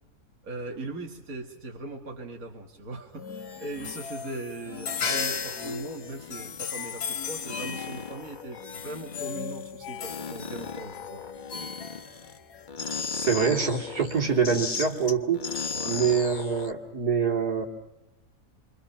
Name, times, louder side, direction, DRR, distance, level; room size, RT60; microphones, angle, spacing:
voice 1, 0.4-11.2 15.7-16.0, right 2 dB, 60° right, 1 dB, 2.5 m, -39 dB
sound 1, 3.2-12.7, left 6 dB, 80° left, 1.7 m, -36 dB
sound 2, 3.6-4.0 4.7-7.0 7.3-9.7 10.0-12.4 12.7-16.7, left 5 dB, 35° left, 1.0 m, -37 dB
voice 2, 13.1-15.5 15.9-17.7, right 6 dB, 75° right, 1 dB, 3.3 m, -25 dB
28.5 x 25.0 x 5.8 m, 0.91 s
omnidirectional pair, 1.7 m